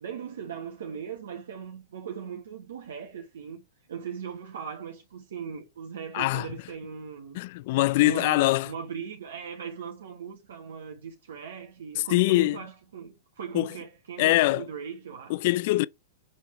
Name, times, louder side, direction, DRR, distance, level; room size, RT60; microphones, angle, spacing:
voice 1, 0.0-3.6 3.9-7.4 8.0-15.4, right 7 dB, 75° right, 1.2 m, -39 dB
voice 2, 6.1-6.5 7.3-8.7 12.0-12.6 13.5-13.7 14.2-14.7 15.3-15.9, left 19 dB, 55° left, 0.3 m, -23 dB
6.8 x 3.7 x 4.3 m
hypercardioid pair, 120°, 0 cm